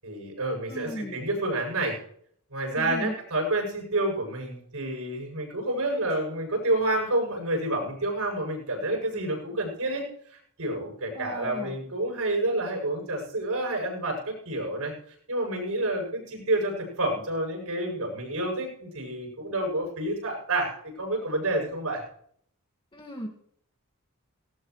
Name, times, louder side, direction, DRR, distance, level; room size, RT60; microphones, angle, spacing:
voice 1, 0.0-2.0 2.5-10.0 10.6-14.9 15.3-20.7 21.0-22.0, right 1 dB, 75° right, 0 dB, 8.0 m, -29 dB
voice 2, 0.7-1.2 2.8-3.1 11.1-11.8 22.9-23.3, equal, 25° left, 0 dB, 2.0 m, -36 dB
18.5 x 18.5 x 3.2 m, 0.65 s
head